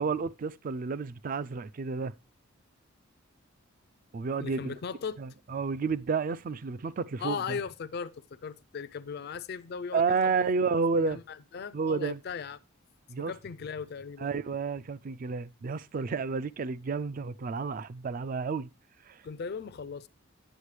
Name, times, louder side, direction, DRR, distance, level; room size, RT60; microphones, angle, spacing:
voice 1, 0.0-2.1 4.1-4.8 5.2-7.6 9.9-11.2 11.7-12.2 13.1-13.3 14.2-18.7 19.0-19.2, right 5 dB, 40° right, 0.3 m, -31 dB
voice 2, 4.4-5.2 7.2-10.3 10.9-12.6 13.2-14.3 19.2-20.1, left 6 dB, 50° left, 0.4 m, -38 dB
9.8 x 7.3 x 3.2 m
head